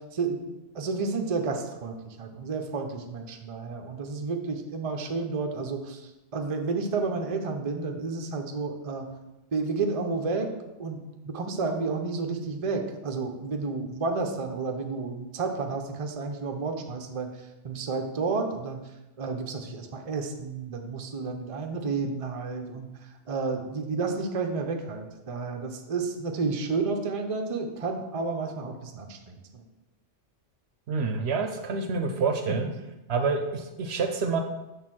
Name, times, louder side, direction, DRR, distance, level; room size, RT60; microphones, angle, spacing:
voice 1, 0.0-9.1 9.5-10.5 10.8-17.3 17.6-18.8 19.2-22.9 23.3-29.6, right 4 dB, 40° right, 4 dB, 0.5 m, -31 dB
voice 2, 30.9-32.7 33.1-34.4, right 4 dB, 65° right, 5 dB, 0.9 m, -27 dB
6.5 x 3.3 x 6.0 m, 0.99 s
omnidirectional pair, 1.3 m